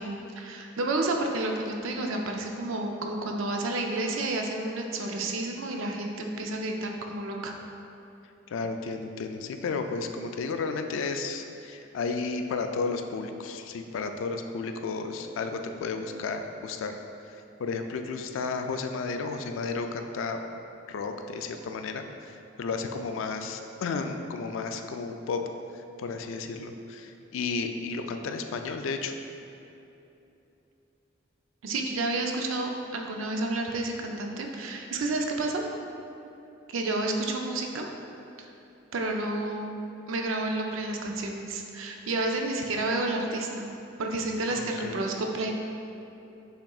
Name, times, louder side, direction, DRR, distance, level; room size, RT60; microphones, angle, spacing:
voice 1, 0.0-7.5 31.6-35.6 36.7-37.9 38.4-38.5 38.9-39.7 40.1-43.7 44.0-45.5, right 2 dB, 80° right, 2 dB, 0.5 m, -30 dB
voice 2, 8.5-17.0 17.6-20.4 20.9-25.4 25.7-29.1 44.5-45.0, left 4 dB, 75° left, 6 dB, 0.3 m, -33 dB
5.7 x 3.6 x 2.3 m, 2.9 s
head